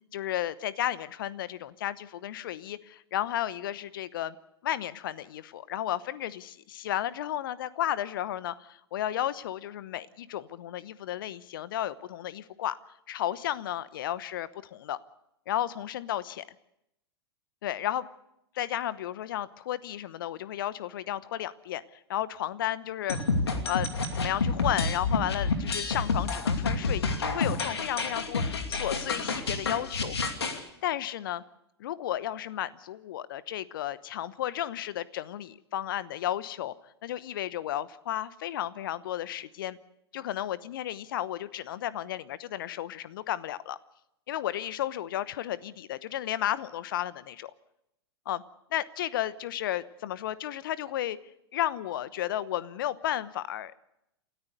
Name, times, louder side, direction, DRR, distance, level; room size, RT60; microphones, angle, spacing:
voice 1, 0.1-4.3 4.6-12.8 13.1-15.0 15.5-16.4 17.6-18.1 18.6-21.8 22.1-23.2 23.6-23.9 24.2-30.2 30.8-31.4 31.8-36.7 37.0-39.8 40.1-43.8 44.3-47.5 48.3-48.4 48.7-51.2 51.5-53.7, left 12 dB, 55° left, 17 dB, 1.0 m, -33 dB
sound 1, 23.1-30.6, left 4 dB, 70° left, 2.6 m, -29 dB
29.0 x 13.5 x 6.7 m, 0.83 s
figure-of-eight pair, 100°, 14 cm